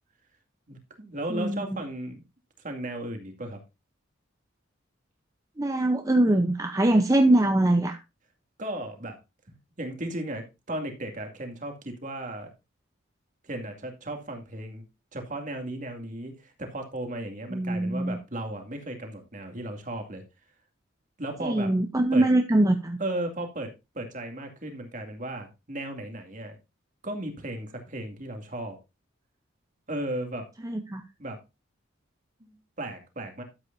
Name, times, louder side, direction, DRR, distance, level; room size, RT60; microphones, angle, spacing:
voice 1, 0.7-2.2 2.6-3.6 8.6-9.2 9.5-12.5 13.4-14.8 15.1-20.2 21.2-21.7 22.1-22.2 23.0-23.7 23.9-26.6 27.0-28.8 29.9-30.5 31.2-31.4 32.4-33.4, right 1 dB, 40° right, 5 dB, 2.3 m, -35 dB
voice 2, 1.3-1.7 5.6-8.0 17.5-18.2 21.4-23.0 30.6-31.0, right 1 dB, 15° right, 6 dB, 0.7 m, -23 dB
12.5 x 8.3 x 2.6 m, 0.24 s
head